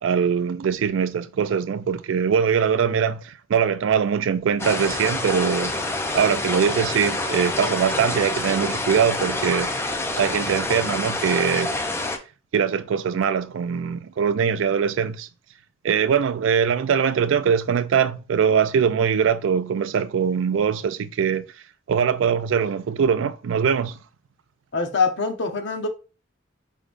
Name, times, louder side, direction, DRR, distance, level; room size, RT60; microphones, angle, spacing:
voice 1, 0.0-5.9 6.1-9.8 10.2-11.7 12.5-15.3 15.8-21.4 21.9-24.0, right 7 dB, 70° right, 0.3 m, -22 dB
sound 1, 4.6-12.2, left 2 dB, 15° left, 0.4 m, -27 dB
voice 2, 24.7-25.9, left 4 dB, 65° left, 0.8 m, -24 dB
4.8 x 3.4 x 2.5 m
head